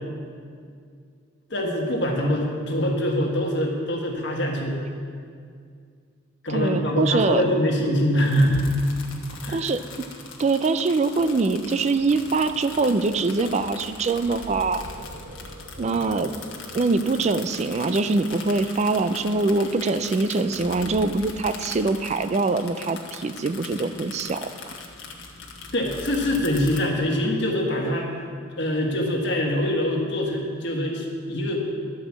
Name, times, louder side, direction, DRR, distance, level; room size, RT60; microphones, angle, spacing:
voice 1, 1.5-4.8 6.4-8.7 9.4-9.7 25.7-28.2 28.6-31.6, equal, 60° left, 0 dB, 1.4 m, -24 dB
voice 2, 6.5-7.4 9.5-9.8 10.4-14.8 15.8-16.3 16.7-24.7, right 3 dB, 35° right, 11 dB, 0.3 m, -23 dB
sound 1, 8.2-26.8, left 4 dB, 75° left, 1.2 m, -41 dB
sound 2, 11.1-21.6, right 1 dB, 85° right, 0.9 m, -45 dB
11.5 x 5.1 x 7.3 m, 2.2 s
head